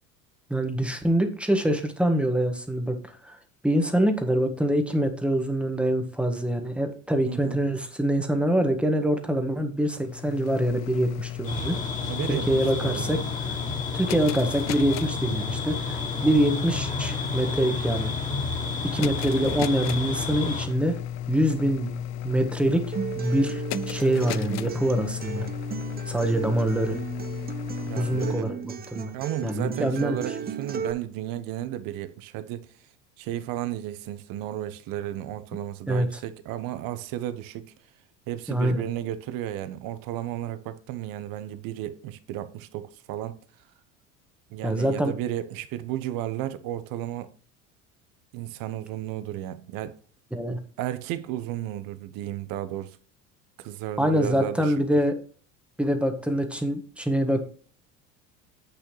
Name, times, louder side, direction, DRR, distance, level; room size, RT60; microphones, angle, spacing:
voice 1, 0.5-3.0 3.2-3.4 3.6-11.8 12.3-13.2 13.4-13.6 13.9-18.1 18.8-20.9 21.3-21.9 22.2-22.8 23.2-25.5 26.1-27.0 27.9-29.1 29.4-30.2 35.9-36.1 38.5-38.8 44.6-45.1 50.3-50.6 54.0-55.1 55.8-57.4, right 1 dB, 5° right, 1.6 m, -25 dB
voice 2, 7.2-7.6 12.1-13.2 27.8-28.5 29.1-32.7 33.2-37.7 38.3-43.4 44.5-47.3 48.3-50.0 50.8-53.0 53.6-54.7, right 12 dB, 55° right, 1.0 m, -33 dB
sound 1, 9.9-28.4, left 11 dB, 45° left, 0.5 m, -34 dB
sound 2, 11.5-20.7, left 3 dB, 20° left, 2.5 m, -32 dB
Acoustic guitar, 22.9-30.9, right 7 dB, 25° right, 0.8 m, -35 dB
8.0 x 6.6 x 3.1 m
hypercardioid pair, 75°, 40 cm